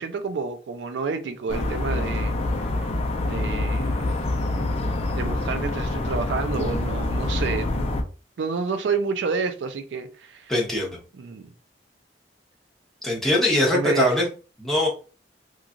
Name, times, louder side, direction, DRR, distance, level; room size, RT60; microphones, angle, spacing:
voice 1, 0.0-2.4 3.2-4.0 5.1-7.9 8.4-10.5 11.1-11.5 13.7-14.1, right 5 dB, 75° right, 0.4 m, -29 dB
sound 1, 1.5-8.0, left 2 dB, 35° left, 0.5 m, -26 dB
voice 2, 10.5-11.0 13.0-14.2 14.6-14.9, left 1 dB, ahead, 0.9 m, -21 dB
3.0 x 2.4 x 2.4 m
head